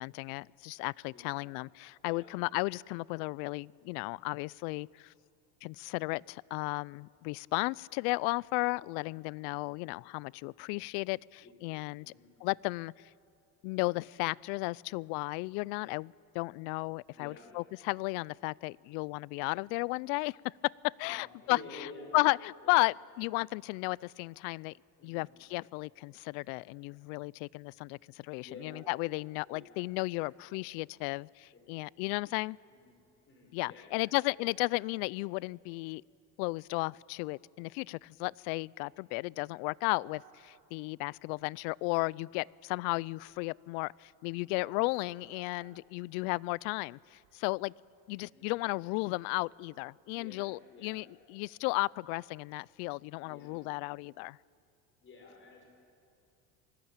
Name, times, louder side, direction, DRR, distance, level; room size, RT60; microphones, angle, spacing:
voice 1, 0.0-5.1 5.6-12.1 12.4-13.1 13.6-21.6 22.1-24.7 25.0-32.6 33.5-36.0 36.4-47.7 48.1-54.4, left 25 dB, 80° left, 25 dB, 0.5 m, -34 dB
voice 2, 1.1-1.5 2.0-2.3 11.4-11.5 12.0-12.3 17.1-17.5 21.0-22.2 22.6-22.8 25.0-25.3 28.4-28.8 29.5-30.4 32.7-32.9 33.2-34.1 48.3-48.6 49.0-49.3 50.1-51.0 53.2-53.6 55.0-55.6, left 3 dB, 25° left, 1 dB, 6.2 m, -51 dB
sound 1, 40.0-48.5, right 11 dB, 60° right, 1.8 m, -62 dB
27.0 x 19.5 x 8.9 m, 2.5 s
cardioid pair, 165°, 43 cm